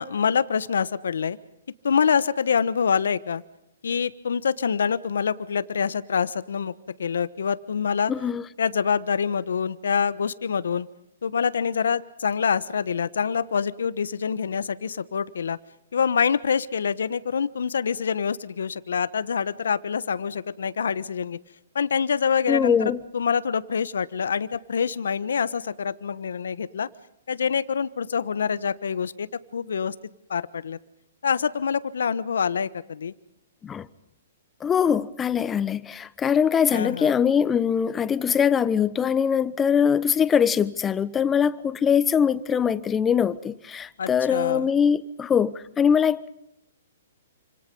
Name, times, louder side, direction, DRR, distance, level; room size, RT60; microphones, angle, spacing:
voice 1, 0.0-1.4 1.8-3.4 3.8-6.7 7.0-8.1 8.6-10.9 11.2-15.6 15.9-21.4 21.7-26.9 27.3-29.3 29.5-29.9 30.3-30.8 31.2-33.1 36.7-37.1 44.0-44.7, left 6 dB, 75° left, 1.2 m, -25 dB
voice 2, 8.1-8.4 22.5-23.0 33.6-33.9 34.6-46.3, left 7 dB, 15° left, 1.1 m, -22 dB
28.5 x 26.0 x 5.4 m
hypercardioid pair, 130°, 0 cm